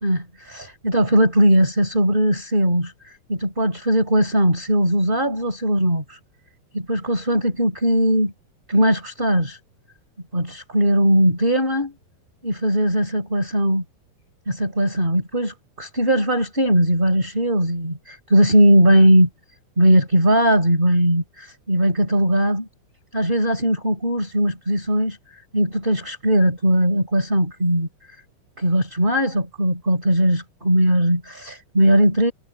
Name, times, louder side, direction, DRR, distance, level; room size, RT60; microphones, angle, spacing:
voice 1, 0.0-6.2 6.7-8.3 8.7-9.6 10.3-11.9 12.4-13.8 14.5-19.3 19.8-22.7 23.1-27.9 28.6-32.3, equal, 15° right, 4.8 m, -19 dB
omnidirectional pair, 4.4 m